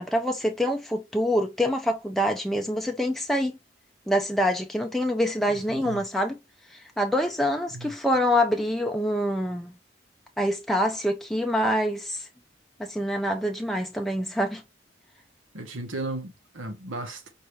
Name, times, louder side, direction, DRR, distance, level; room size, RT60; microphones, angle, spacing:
voice 1, 0.0-3.6 4.1-6.4 6.7-9.7 10.4-12.3 12.8-14.6, equal, ahead, 0.3 m, -26 dB
voice 2, 5.5-6.0 7.7-7.9 15.5-17.3, right 2 dB, 85° right, 1.2 m, -36 dB
4.7 x 2.7 x 3.2 m
head